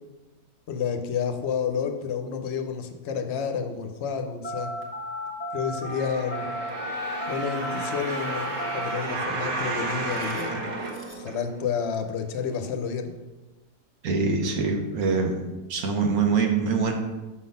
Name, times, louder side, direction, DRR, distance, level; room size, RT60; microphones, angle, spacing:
voice 1, 0.7-4.7 5.5-6.5 7.3-10.7 11.1-13.1, left 6 dB, 60° left, 6 dB, 0.8 m, -30 dB
Telephone, 4.4-11.3, equal, 10° left, 1.0 m, -35 dB
sound 1, 5.8-11.8 12.4-12.5, right 2 dB, 55° right, 1.2 m, -32 dB
voice 2, 14.0-15.4 15.7-16.9, right 4 dB, 85° right, 3 dB, 1.4 m, -24 dB
6.3 x 3.8 x 5.4 m, 1.1 s
omnidirectional pair, 1.5 m